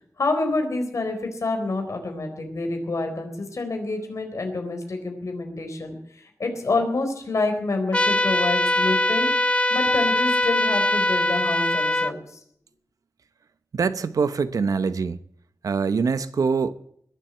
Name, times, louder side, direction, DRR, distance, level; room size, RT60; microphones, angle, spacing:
voice 1, 0.2-12.4, left 3 dB, 60° left, 4 dB, 4.1 m, -27 dB
sound 1, 7.9-12.1, left 1 dB, 20° left, 0.7 m, -22 dB
voice 2, 13.7-15.2 15.6-16.7, right 5 dB, 85° right, 12 dB, 0.9 m, -24 dB
21.0 x 7.6 x 8.1 m, 0.66 s
wide cardioid pair, 105°, 6 cm